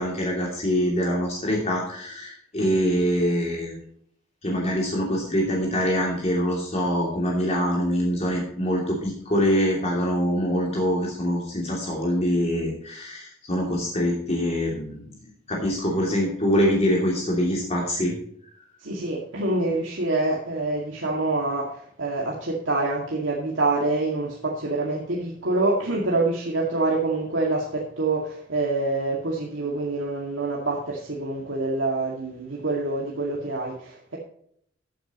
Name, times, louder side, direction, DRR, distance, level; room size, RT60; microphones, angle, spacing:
voice 1, 0.0-3.7 4.4-15.0 15.5-18.2, equal, 35° left, -2 dB, 2.8 m, -24 dB
voice 2, 18.8-34.2, right 2 dB, 80° right, -3 dB, 2.2 m, -26 dB
14.0 x 8.7 x 3.0 m, 0.65 s
head